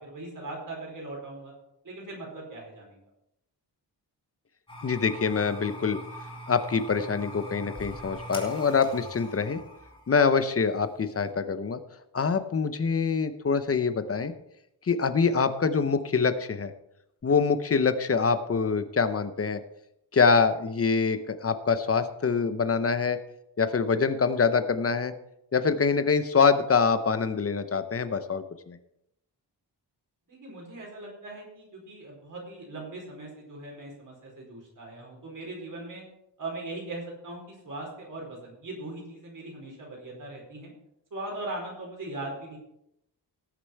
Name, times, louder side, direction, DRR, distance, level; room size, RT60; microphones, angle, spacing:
voice 1, 0.0-1.5 1.8-3.0 30.3-36.0 36.4-40.7 41.1-42.6, right 2 dB, 45° right, -2 dB, 4.6 m, -39 dB
sound 1, 4.7-11.3, equal, 10° left, 3.3 m, -43 dB
voice 2, 4.8-6.0 6.5-9.6 10.1-11.8 12.1-14.3 14.8-16.7 17.2-19.6 20.1-23.2 23.6-25.1 25.5-28.8, left 5 dB, 35° left, 11 dB, 0.8 m, -25 dB
18.5 x 6.9 x 4.6 m, 0.81 s
wide cardioid pair, 175°, 42 cm